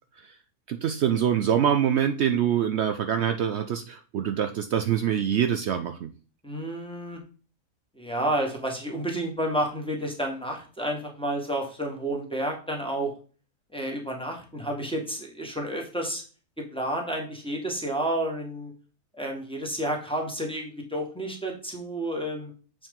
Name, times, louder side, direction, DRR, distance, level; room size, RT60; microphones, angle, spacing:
voice 1, 0.7-6.1, right 9 dB, 80° right, 8 dB, 0.6 m, -25 dB
voice 2, 6.4-7.2 7.9-13.1 13.7-16.2 16.6-18.7 19.1-22.5, right 1 dB, 5° left, 0 dB, 1.4 m, -30 dB
7.6 x 4.5 x 3.7 m, 0.38 s
omnidirectional pair, 1.7 m